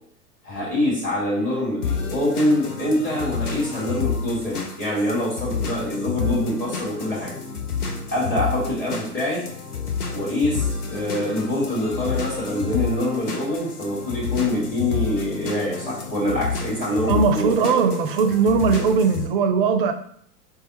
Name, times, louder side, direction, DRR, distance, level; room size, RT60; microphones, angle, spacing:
voice 1, 0.4-7.3 8.1-9.5 10.1-17.5, left 1 dB, 20° left, -6 dB, 1.7 m, -25 dB
sound 1, 1.8-19.3, left 5 dB, 75° left, 0.9 m, -29 dB
voice 2, 17.1-19.9, right 5 dB, 35° right, 9 dB, 0.5 m, -19 dB
4.7 x 3.2 x 3.0 m, 0.64 s
figure-of-eight pair, 100°, 46 cm